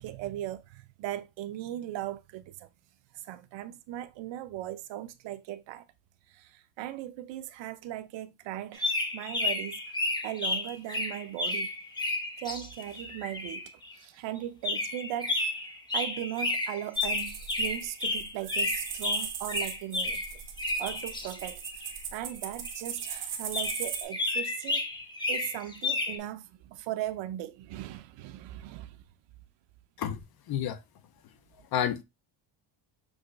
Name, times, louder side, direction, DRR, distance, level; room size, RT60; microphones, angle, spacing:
voice 1, 0.0-2.7 3.2-5.8 6.3-9.8 10.2-11.7 12.4-13.7 14.0-15.5 15.9-20.2 20.8-21.6 22.1-24.8 25.3-29.0, right 13 dB, 80° right, 0.7 m, -38 dB
sound 1, 8.7-13.9 14.6-22.0 22.6-23.2 23.5-26.2, left 2 dB, 10° left, 0.8 m, -32 dB
sound 2, 16.9-24.0, right 8 dB, 60° right, 1.4 m, -39 dB
voice 2, 30.5-30.8 31.7-32.0, left 9 dB, 55° left, 0.7 m, -29 dB
6.3 x 3.1 x 2.4 m
cardioid pair, 150°, 44 cm